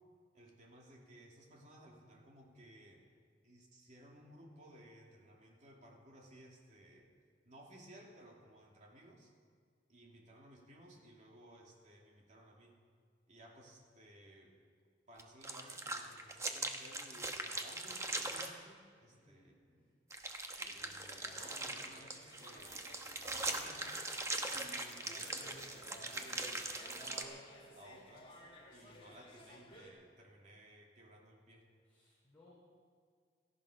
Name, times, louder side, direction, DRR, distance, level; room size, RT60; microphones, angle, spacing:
voice 1, 0.3-3.0 3.4-7.1 7.4-9.3 9.9-12.8 13.3-14.5 15.1-19.6 20.7-22.8 23.0-23.9 24.5-28.3 28.7-31.6, right 1 dB, 45° right, -1 dB, 2.7 m, -58 dB
sound 1, 15.2-18.5 20.1-27.2, right 2 dB, 15° right, 1.1 m, -41 dB
voice 2, 19.1-19.9 31.8-32.5, left 2 dB, 10° left, -9 dB, 4.2 m, -66 dB
sound 2, 20.6-29.9, left 1 dB, 30° left, 2.6 m, -57 dB
17.5 x 13.5 x 5.0 m, 2.1 s
head